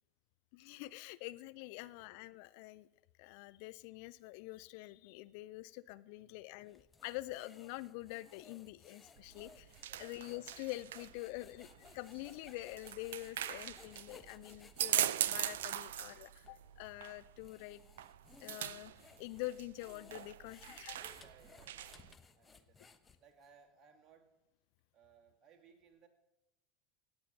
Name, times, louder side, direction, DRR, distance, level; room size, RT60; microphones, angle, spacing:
voice 1, 0.5-2.9 3.2-9.7 10.0-17.8 18.4-18.9 19.2-21.0, left 19 dB, 55° left, 16 dB, 0.4 m, -46 dB
voice 2, 1.6-1.9 6.1-6.5 9.8-10.3 15.7-16.0 21.0-24.4 24.9-26.1, right 6 dB, 30° right, 2 dB, 2.6 m, -66 dB
sound 1, 6.7-15.8 16.4-16.5 17.2-23.4, left 4 dB, 20° left, 1.1 m, -61 dB
sound 2, 9.2-22.1, right 12 dB, 65° right, 0.4 m, -41 dB
17.5 x 8.4 x 6.0 m, 1.0 s
figure-of-eight pair, 80°, 0 cm